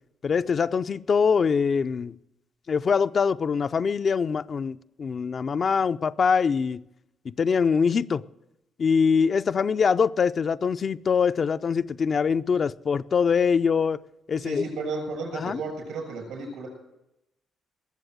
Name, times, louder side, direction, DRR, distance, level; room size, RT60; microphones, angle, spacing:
voice 1, 0.2-2.1 2.7-6.8 7.2-8.2 8.8-14.0 14.3-14.6 15.3-15.6, left 6 dB, 45° left, 0.4 m, -23 dB
voice 2, 14.4-16.7, right 3 dB, 80° right, 7.1 m, -33 dB
20.0 x 7.4 x 7.9 m
cardioid pair, 90°, 0 cm